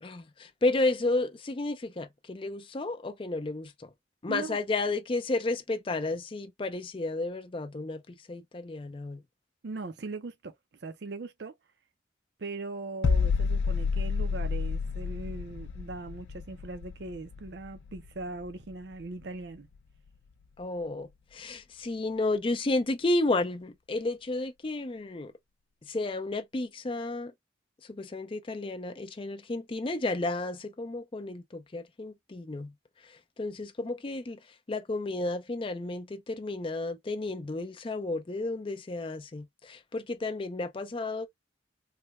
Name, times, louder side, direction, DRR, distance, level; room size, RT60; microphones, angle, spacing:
voice 1, 0.0-3.9 4.2-9.2 20.6-25.3 25.8-27.3 27.8-32.7 33.0-41.3, left 2 dB, 30° left, 0.4 m, -32 dB
voice 2, 4.3-4.6 9.6-10.5 10.8-11.6 12.4-19.7, right 3 dB, 60° right, 0.5 m, -40 dB
sound 1, 13.0-18.7 19.0-19.2, left 5 dB, 85° left, 0.4 m, -30 dB
3.3 x 2.2 x 2.9 m
head